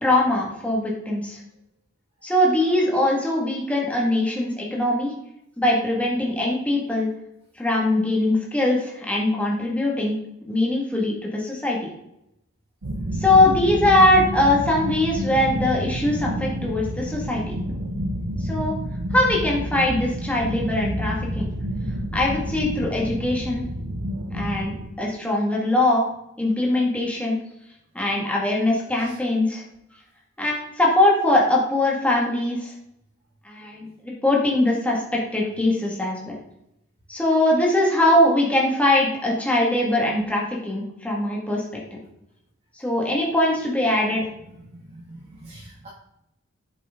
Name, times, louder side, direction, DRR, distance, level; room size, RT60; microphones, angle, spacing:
voice 1, 0.0-1.4 2.2-5.1 5.6-7.1 7.6-10.2 10.5-11.8 13.2-17.4 18.4-18.7 19.1-21.5 22.1-23.6 24.3-26.0 26.4-27.4 27.9-29.6 30.4-32.7 33.5-36.4 37.1-41.6 42.8-44.3, left 1 dB, 5° left, -3 dB, 2.0 m, -21 dB
sound 1, 12.8-24.9, equal, 80° right, 0.9 m, -29 dB
voice 2, 44.5-45.9, right 1 dB, 30° right, -6 dB, 2.3 m, -45 dB
8.4 x 7.1 x 3.8 m, 0.81 s
head